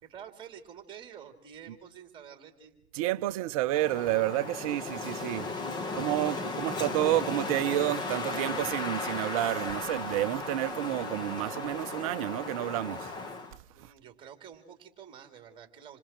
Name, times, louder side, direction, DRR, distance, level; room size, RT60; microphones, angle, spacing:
voice 1, 0.0-2.7 13.7-16.0, right 8 dB, 15° right, 3.0 m, -48 dB
voice 2, 2.9-5.5 5.9-13.1 13.8-13.9, right 15 dB, 35° right, 0.8 m, -30 dB
Wind, 3.7-13.6, left 3 dB, 15° left, 0.9 m, -36 dB
27.5 x 27.5 x 4.5 m
hypercardioid pair, 140°, 33 cm